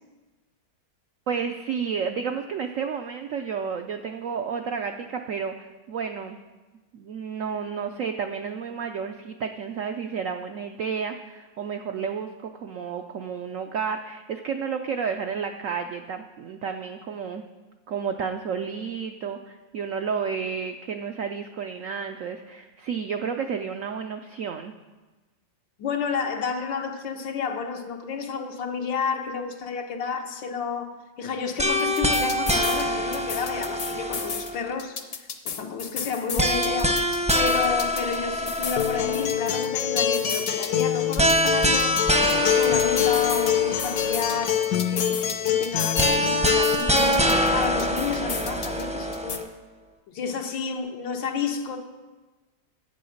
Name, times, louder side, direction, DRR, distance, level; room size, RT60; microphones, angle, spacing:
voice 1, 1.3-6.4 6.9-17.4 17.9-24.7, right 6 dB, 80° right, 6 dB, 0.7 m, -31 dB
voice 2, 25.8-35.0 35.5-42.0 42.4-47.2 47.5-49.5 50.1-51.8, left 5 dB, 85° left, 4 dB, 1.8 m, -31 dB
sound 1, 31.6-34.7 36.4-39.4 41.2-44.3 46.0-49.4, equal, 10° right, 0.4 m, -25 dB
sound 2, 31.8-32.8 33.1-34.5 34.8-38.2 38.5-40.8 41.1-43.5 43.8-46.2 46.5-48.8 49.1-49.4, left 6 dB, 50° left, 0.7 m, -34 dB
Acoustic guitar, 38.8-46.8, left 9 dB, 65° left, 1.2 m, -25 dB
11.0 x 8.4 x 6.4 m, 1.2 s
omnidirectional pair, 2.0 m